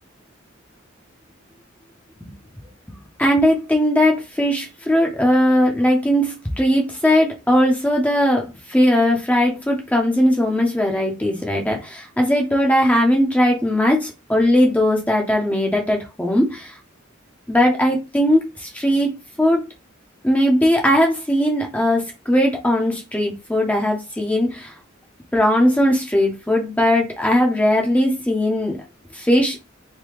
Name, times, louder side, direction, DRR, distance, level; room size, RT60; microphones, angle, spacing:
voice 1, 3.2-16.7 17.5-19.1 19.4-19.6 20.2-24.7 25.3-28.8 29.1-29.6, equal, 5° left, 0.5 m, -19 dB
3.3 x 2.1 x 3.0 m
head